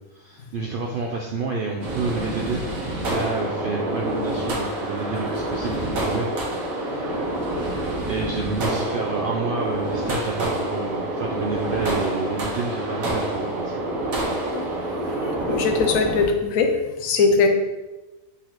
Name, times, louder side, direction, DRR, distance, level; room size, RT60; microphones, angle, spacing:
voice 1, 0.1-6.3 8.1-13.7, right 4 dB, 70° right, -1 dB, 0.5 m, -29 dB
sound 1, 1.8-16.3, right 1 dB, 85° right, 1.4 m, -27 dB
voice 2, 15.1-16.7 17.0-17.5, left 4 dB, 80° left, 4 dB, 1.0 m, -21 dB
4.1 x 3.9 x 3.0 m, 1.1 s
omnidirectional pair, 1.4 m